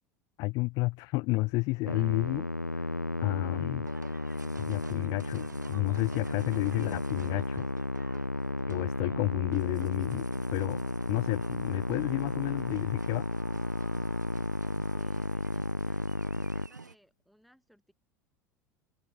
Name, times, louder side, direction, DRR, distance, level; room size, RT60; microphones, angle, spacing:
voice 1, 0.4-2.9 3.2-3.9 4.6-7.7 8.7-10.2 10.5-10.8 11.1-13.2, left 25 dB, 45° left, 0.4 m, -31 dB
Musical instrument, 1.8-16.7, left 2 dB, 90° left, 0.9 m, -33 dB
sound 1, 3.8-16.9, right 4 dB, 80° right, 3.5 m, -48 dB
voice 2, 14.6-17.9, equal, ahead, 6.5 m, -62 dB
figure-of-eight pair, 75°, 9 cm